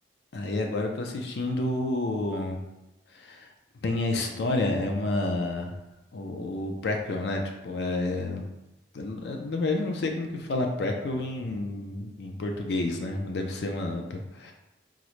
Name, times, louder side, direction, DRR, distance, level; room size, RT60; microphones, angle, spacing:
voice 1, 0.3-2.6 3.1-3.5 3.8-5.7 6.1-8.4 8.9-14.5, left 2 dB, 70° left, 3 dB, 0.4 m, -29 dB
3.7 x 2.1 x 3.0 m, 0.93 s
head